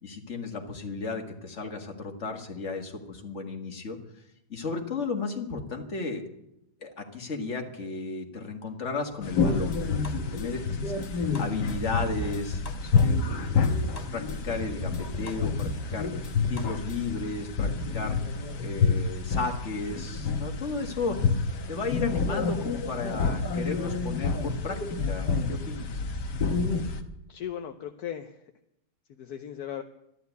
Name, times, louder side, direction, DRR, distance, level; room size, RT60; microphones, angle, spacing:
voice 1, 0.0-4.0 4.5-6.2 6.8-21.4 21.7-26.0, left 4 dB, 45° left, 3 dB, 2.1 m, -34 dB
sound 1, 9.2-27.0, left 4 dB, 90° left, 1.9 m, -28 dB
sound 2, 9.4-17.3, left 1 dB, 30° left, 1.0 m, -39 dB
voice 2, 27.3-28.4 29.2-29.8, left 9 dB, 70° left, 6 dB, 1.3 m, -37 dB
13.0 x 11.5 x 8.2 m, 0.82 s
omnidirectional pair, 1.7 m